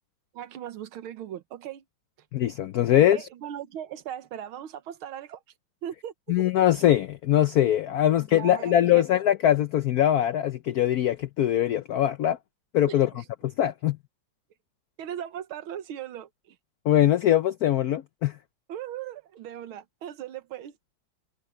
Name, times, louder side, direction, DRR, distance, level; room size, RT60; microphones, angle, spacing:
voice 1, 0.3-1.8 2.9-5.4 5.8-6.4 8.1-9.1 12.8-13.2 15.0-16.3 18.7-20.7, right 10 dB, 80° right, 1.9 m, -38 dB
voice 2, 2.3-3.3 6.3-12.4 12.7-13.1 13.4-14.0 16.9-18.3, left 12 dB, 85° left, 0.8 m, -22 dB
omnidirectional pair, 2.3 m